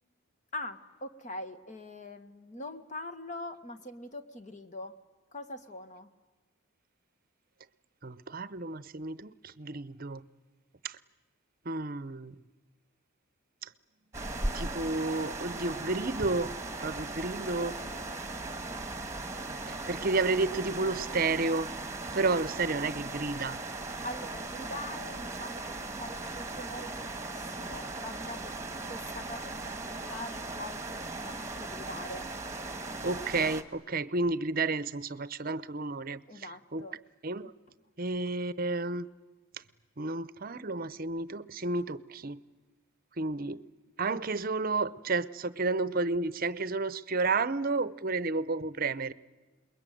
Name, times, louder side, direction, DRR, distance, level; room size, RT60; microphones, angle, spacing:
voice 1, 0.5-4.9 5.3-6.1 19.8-20.0 24.0-28.5 28.9-29.8 30.0-30.8 31.2-32.3 36.3-37.0, left 2 dB, 35° left, 1.5 m, -43 dB
voice 2, 8.0-10.2 10.8-11.0 11.7-12.3 13.6-13.7 14.4-16.5 16.8-17.8 19.7-21.7 22.1-23.6 33.0-36.9 37.2-37.5 38.0-39.1 40.0-42.4 43.2-43.6 44.0-49.1, right 3 dB, 40° right, 0.8 m, -31 dB
sound 1, 14.1-33.6, right 2 dB, 15° right, 1.7 m, -38 dB
28.0 x 21.5 x 9.2 m
head